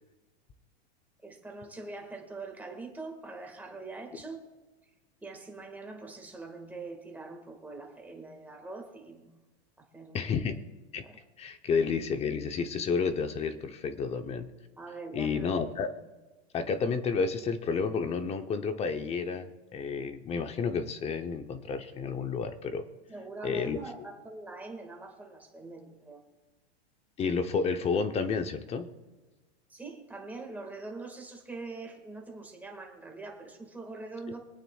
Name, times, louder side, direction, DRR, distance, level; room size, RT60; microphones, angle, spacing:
voice 1, 1.2-4.4 5.2-9.3 9.8-10.3 11.0-11.2 14.8-15.6 23.1-26.2 29.7-34.4, right 3 dB, 5° right, 1.8 m, -43 dB
voice 2, 10.1-10.6 10.9-11.0 11.4-14.5 15.1-15.9 16.5-22.8 23.4-23.8 27.2-28.9, left 5 dB, 20° left, 0.7 m, -30 dB
24.5 x 9.0 x 2.4 m
supercardioid pair, 145°, 33 cm